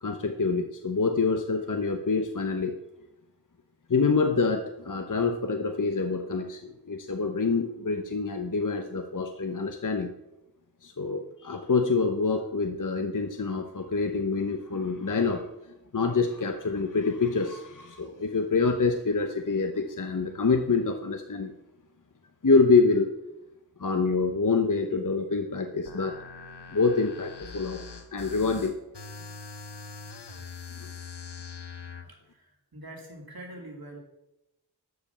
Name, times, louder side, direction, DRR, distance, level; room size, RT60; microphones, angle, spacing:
voice 1, 0.0-2.8 3.9-10.1 10.8-15.5 15.9-21.5 22.4-23.1 23.8-26.2 26.7-28.8 30.8-30.9, left 4 dB, 50° left, 5 dB, 0.9 m, -26 dB
sound 1, 25.8-32.0, left 5 dB, 75° left, 1.0 m, -43 dB
voice 2, 31.7-34.0, right 1 dB, 60° right, 0 dB, 2.9 m, -45 dB
12.5 x 5.2 x 6.9 m, 0.90 s
wide cardioid pair, 50°, 41 cm